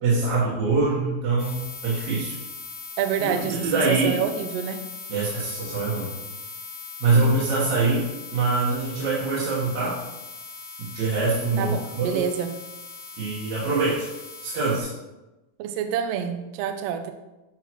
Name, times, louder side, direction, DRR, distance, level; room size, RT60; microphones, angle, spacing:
voice 1, 0.0-2.3 3.2-4.2 5.1-6.1 7.0-8.1 8.3-10.0 10.8-12.2 13.2-14.1 14.4-14.9, right 3 dB, 70° right, -8 dB, 2.8 m, -24 dB
sound 1, 1.4-14.8, left 5 dB, 60° left, 2.5 m, -40 dB
voice 2, 3.0-4.8 11.6-12.6 15.6-17.1, right 8 dB, 85° right, 8 dB, 1.4 m, -27 dB
9.1 x 4.9 x 3.1 m, 1.0 s
omnidirectional pair, 3.5 m